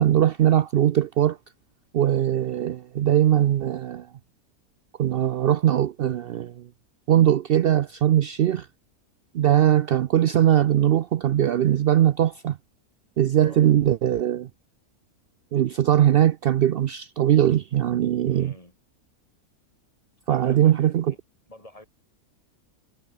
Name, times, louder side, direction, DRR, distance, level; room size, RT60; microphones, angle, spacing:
voice 1, 0.0-1.4 1.9-4.1 5.0-6.7 7.1-8.7 9.3-12.6 13.2-14.5 15.5-18.5 20.3-21.0, right 11 dB, 75° right, 0.5 m, -20 dB
voice 2, 13.4-13.8 18.3-18.8 20.3-21.2 21.5-21.9, left 1 dB, 20° left, 3.9 m, -47 dB
omnidirectional pair, 1.6 m